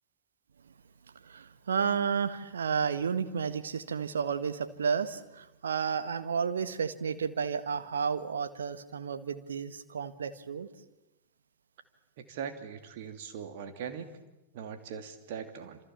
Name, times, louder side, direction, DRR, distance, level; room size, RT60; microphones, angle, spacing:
voice 1, 1.3-10.7, right 6 dB, 70° right, 11 dB, 1.6 m, -32 dB
voice 2, 12.2-14.1 14.5-15.8, right 7 dB, 50° right, 7 dB, 2.8 m, -40 dB
27.5 x 27.5 x 7.3 m, 0.98 s
figure-of-eight pair, 90°, 0 cm